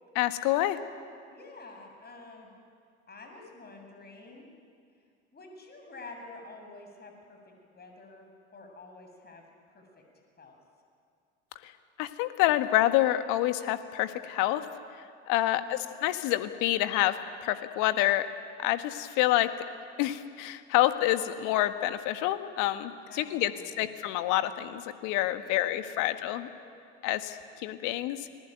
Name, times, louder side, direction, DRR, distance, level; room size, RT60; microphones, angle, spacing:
voice 1, 0.1-0.8 11.6-11.7 12.0-14.6 15.3-18.3 18.6-19.5 20.0-23.5 23.8-26.5 27.0-28.3, left 14 dB, 60° left, 10 dB, 1.7 m, -27 dB
voice 2, 1.3-2.5 3.1-4.5 5.3-7.4 7.6-9.4 9.7-10.0 10.4-10.6 15.5-15.9 23.1-23.9 25.4-26.6, left 3 dB, 30° left, 3 dB, 7.6 m, -49 dB
29.5 x 20.0 x 9.2 m, 2.2 s
figure-of-eight pair, 70°, 35 cm